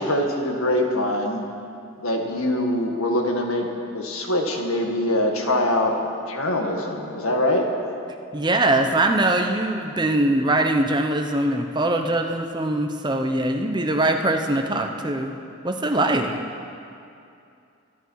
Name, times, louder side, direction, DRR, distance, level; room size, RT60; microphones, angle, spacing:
voice 1, 0.0-1.4 2.0-3.7 3.9-5.9 6.3-7.7, left 1 dB, 85° left, 2 dB, 1.9 m, -23 dB
voice 2, 8.3-15.4 15.6-16.5, right 1 dB, 20° right, 4 dB, 0.8 m, -22 dB
25.0 x 10.5 x 4.8 m, 2.5 s
head